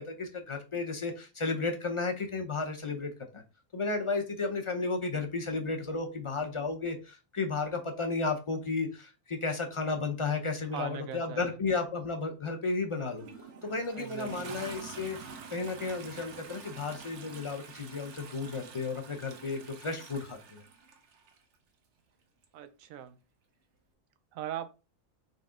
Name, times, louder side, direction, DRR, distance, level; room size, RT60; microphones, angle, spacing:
voice 1, 0.0-3.4 3.7-13.3 13.6-20.6, left 3 dB, 40° left, 0.4 m, -33 dB
voice 2, 10.7-11.6 13.9-14.6 22.5-23.2 24.3-24.7, right 10 dB, 90° right, 1.0 m, -40 dB
Toilet flush, 13.0-21.4 22.4-22.5, right 5 dB, 60° right, 1.0 m, -47 dB
4.0 x 3.3 x 3.7 m
omnidirectional pair, 1.4 m